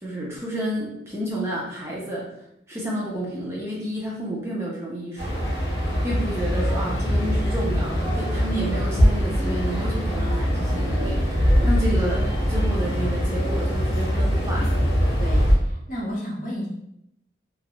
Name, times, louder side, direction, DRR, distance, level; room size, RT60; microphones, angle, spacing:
voice 1, 0.0-2.3 2.7-5.4 6.0-14.7, right 1 dB, 15° right, -5 dB, 0.4 m, -30 dB
sound 1, 5.2-15.6, equal, 85° left, 0.8 m, -22 dB
voice 2, 15.2-16.7, equal, 45° left, -4 dB, 0.7 m, -32 dB
2.3 x 2.0 x 2.9 m, 0.79 s
head